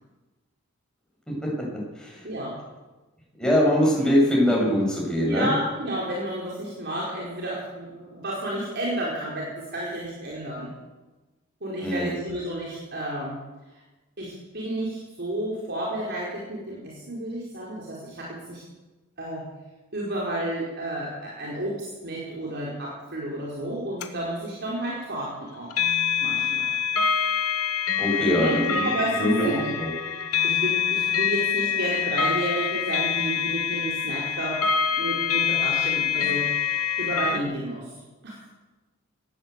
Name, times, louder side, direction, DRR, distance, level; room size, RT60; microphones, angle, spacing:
voice 1, 2.2-2.6 5.2-10.7 11.6-13.4 14.2-18.6 19.2-19.4 19.9-25.7 26.2-26.7 28.2-29.7 30.4-36.4 37.0-37.9 38.2-38.5, right 1 dB, 50° right, -4 dB, 4.9 m, -31 dB
voice 2, 3.4-5.5 11.8-12.1 28.0-29.9, equal, 5° left, -3 dB, 7.5 m, -23 dB
sound 1, 24.0-24.1 25.7-37.4, left 7 dB, 85° left, 2.1 m, -25 dB
19.5 x 16.5 x 8.4 m, 1.2 s
head